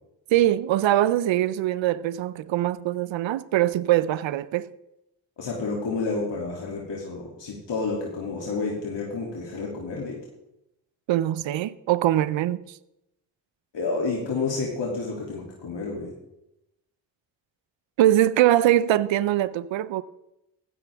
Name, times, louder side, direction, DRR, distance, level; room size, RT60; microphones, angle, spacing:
voice 1, 0.3-4.7 11.1-12.8 18.0-20.0, right 13 dB, 85° right, 0.7 m, -22 dB
voice 2, 5.4-10.2 13.7-16.1, left 3 dB, 70° left, 3.0 m, -30 dB
15.0 x 13.0 x 3.6 m
supercardioid pair, 45°, 44 cm